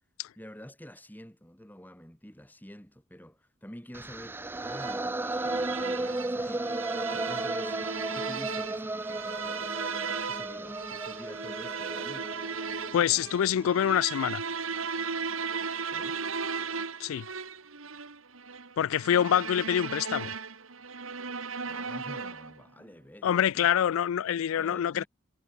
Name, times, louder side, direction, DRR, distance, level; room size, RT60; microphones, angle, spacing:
voice 1, 0.4-6.8 7.1-7.8 8.1-9.7 10.2-12.3 15.9-16.2 21.6-23.7 24.6-25.1, equal, 10° left, 4.4 m, -48 dB
sound 1, 3.9-14.0, right 2 dB, 10° right, 0.5 m, -35 dB
sound 2, 4.6-22.6, right 5 dB, 90° right, 2.4 m, -36 dB
voice 2, 12.9-14.4 17.0-17.3 18.8-20.3 23.2-25.0, left 9 dB, 85° left, 0.3 m, -26 dB
head